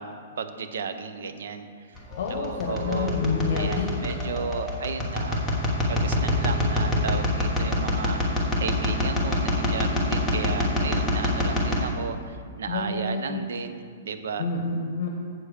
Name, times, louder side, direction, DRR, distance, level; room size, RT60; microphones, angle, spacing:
voice 1, 0.0-2.0 2.3-3.1 3.5-5.4 5.9-14.4, right 5 dB, 75° right, 9 dB, 0.6 m, -34 dB
sound 1, 1.9-11.8, left 1 dB, 5° left, 1.1 m, -26 dB
voice 2, 2.2-3.9 12.7-13.5 14.4-15.1, left 4 dB, 65° left, 2 dB, 0.9 m, -28 dB
7.7 x 7.0 x 5.0 m, 2.3 s
hypercardioid pair, 160°, 0 cm